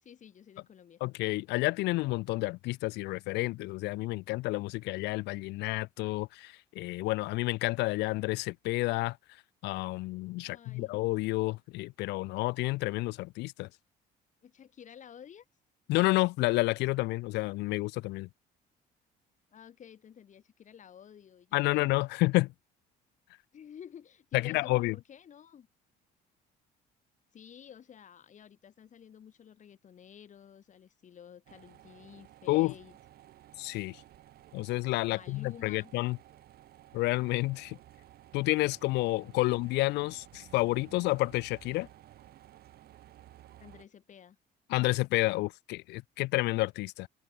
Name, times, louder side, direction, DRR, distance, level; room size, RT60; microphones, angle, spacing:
voice 1, 0.0-1.0 10.4-10.9 14.4-15.5 19.5-21.9 23.5-25.7 27.3-33.0 35.1-35.9 43.6-44.4, left 8 dB, 45° left, 4.4 m, -52 dB
voice 2, 1.0-9.2 9.6-13.7 15.9-18.3 21.5-22.5 24.3-24.9 32.5-32.7 33.6-34.0 34.5-36.2 36.9-37.8 38.3-41.9 44.7-47.1, left 21 dB, 90° left, 0.9 m, -30 dB
sound 1, 31.5-43.9, right 13 dB, 65° right, 4.2 m, -55 dB
cardioid pair, 110°, 17 cm